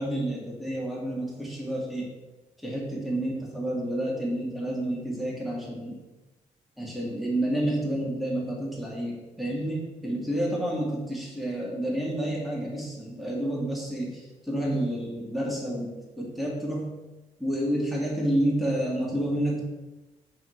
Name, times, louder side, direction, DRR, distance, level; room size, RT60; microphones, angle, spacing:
voice 1, 0.0-2.1 2.6-6.0 6.8-16.9 17.4-19.6, right 1 dB, ahead, -4 dB, 1.8 m, -29 dB
4.7 x 4.0 x 5.4 m, 1.1 s
cardioid pair, 100°, 13 cm